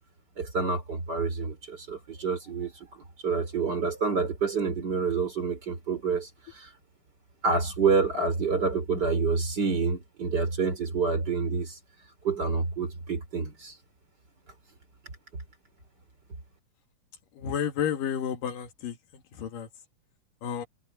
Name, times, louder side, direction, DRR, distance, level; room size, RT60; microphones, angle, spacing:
voice 1, 0.4-6.7 7.4-11.8 12.2-13.8, right 4 dB, 30° right, 4.0 m, -28 dB
voice 2, 17.4-19.0 19.4-19.7 20.4-20.7, left 8 dB, 75° left, 3.4 m, -31 dB
omnidirectional pair, 3.9 m